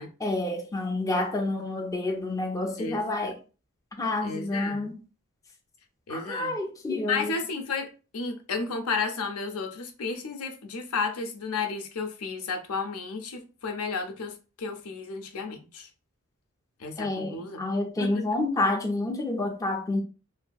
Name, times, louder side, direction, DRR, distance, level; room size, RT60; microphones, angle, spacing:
voice 1, 0.2-3.3 4.0-4.9 6.1-7.3 17.0-20.0, left 2 dB, 15° left, 0.4 m, -29 dB
voice 2, 2.8-3.3 4.2-4.9 6.1-6.5 7.1-15.9 16.8-17.6 18.0-18.3, left 4 dB, 75° left, 0.6 m, -33 dB
2.6 x 2.6 x 2.2 m
head